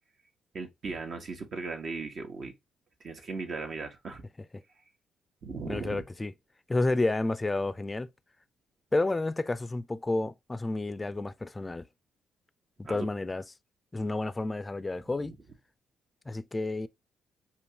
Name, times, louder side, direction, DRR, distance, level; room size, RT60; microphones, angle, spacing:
voice 1, 0.5-2.5 3.0-4.2 5.4-6.0 12.8-13.1, right 4 dB, 55° right, 1.1 m, -37 dB
voice 2, 5.7-6.3 6.7-8.1 8.9-11.9 12.8-13.4 13.9-15.3 16.3-16.9, left 2 dB, 25° left, 0.5 m, -30 dB
5.1 x 2.5 x 2.8 m
hypercardioid pair, 45°, 0 cm